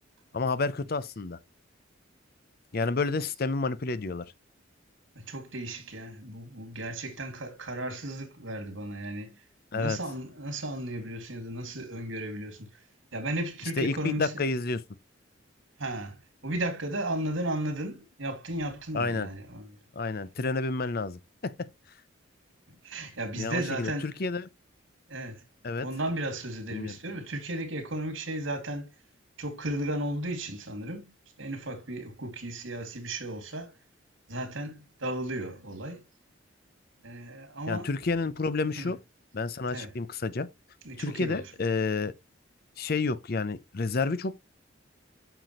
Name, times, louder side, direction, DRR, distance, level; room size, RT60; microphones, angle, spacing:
voice 1, 0.3-1.4 2.7-4.3 9.7-10.0 13.8-14.8 18.9-19.3 19.9-21.5 23.4-24.5 25.6-25.9 26.7-27.0 37.7-39.0 39.3-40.5 41.0-42.1 42.8-44.4, left 3 dB, 50° left, 0.6 m, -30 dB
voice 2, 5.2-9.4 9.7-12.8 13.1-14.3 15.8-19.8 22.8-24.1 25.1-25.4 25.8-28.9 29.4-31.1 31.4-33.7 34.3-36.1 37.0-37.9 38.7-38.9 39.7-39.9 40.8-41.4, right 1 dB, 80° right, 2.4 m, -35 dB
9.0 x 6.1 x 3.1 m
head